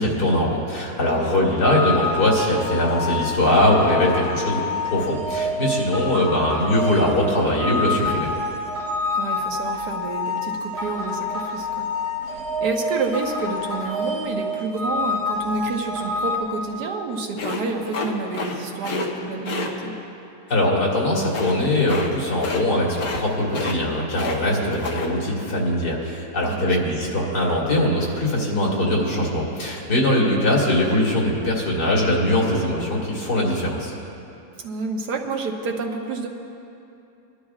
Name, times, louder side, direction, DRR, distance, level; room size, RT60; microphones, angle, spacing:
voice 1, 0.0-8.3 20.5-33.9, left 1 dB, 90° left, -4 dB, 2.9 m, -21 dB
voice 2, 1.2-1.5 9.1-11.9 12.3-19.9 24.5-24.7 26.4-26.8 34.6-36.3, right 4 dB, 80° right, 2 dB, 1.6 m, -29 dB
sound 1, 1.6-16.4, left 2 dB, 20° left, 2.3 m, -27 dB
sound 2, 17.4-18.6 18.8-19.1 19.4-19.7 21.2-21.5 21.9-22.1 22.3-22.6 22.9-23.2 23.5-24.4 24.7-25.1, left 3 dB, 65° left, 1.6 m, -29 dB
22.5 x 11.5 x 2.4 m, 2.8 s
omnidirectional pair, 1.7 m